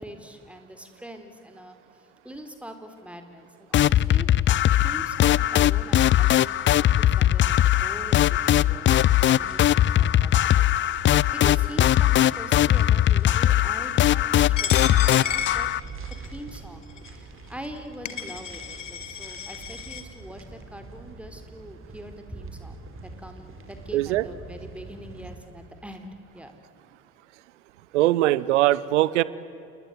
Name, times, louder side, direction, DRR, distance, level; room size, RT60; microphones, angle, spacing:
voice 1, 0.0-1.8 2.2-4.5 4.8-6.9 7.1-15.7 16.2-26.6, equal, 5° right, 6 dB, 4.1 m, -43 dB
sound 1, 3.7-15.8, left 12 dB, 30° left, 0.5 m, -20 dB
sound 2, 7.7-25.4, right 3 dB, 35° right, 4.7 m, -44 dB
Coin (dropping), 14.6-16.3 17.0-17.1 17.8-17.9 18.1-20.0, left 9 dB, 75° left, 1.8 m, -32 dB
voice 2, 23.9-24.3 27.9-29.2, right 16 dB, 70° right, 19 dB, 1.0 m, -21 dB
29.0 x 21.0 x 9.7 m, 2.6 s
figure-of-eight pair, 55°, 37 cm